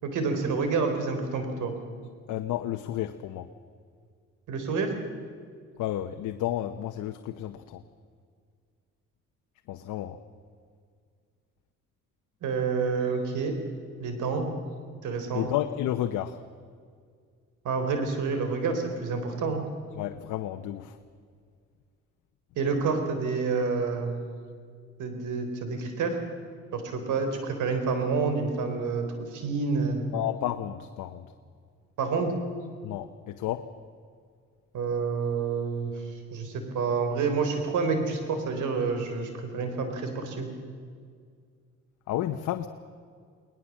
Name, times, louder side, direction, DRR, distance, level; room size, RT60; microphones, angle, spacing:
voice 1, 0.0-1.7 4.5-4.9 12.4-13.5 14.0-14.5 15.0-15.5 17.6-19.6 22.6-24.2 25.0-26.2 26.7-30.0 32.0-32.3 34.7-35.9 36.3-40.5, right 4 dB, 80° right, 6 dB, 4.1 m, -28 dB
voice 2, 2.3-3.5 5.8-7.8 9.7-10.2 15.3-16.4 20.0-20.9 30.1-31.2 32.8-33.6 42.1-42.7, left 13 dB, 90° left, 7 dB, 0.9 m, -31 dB
20.0 x 19.5 x 7.4 m, 2.1 s
cardioid pair, 90°, 30 cm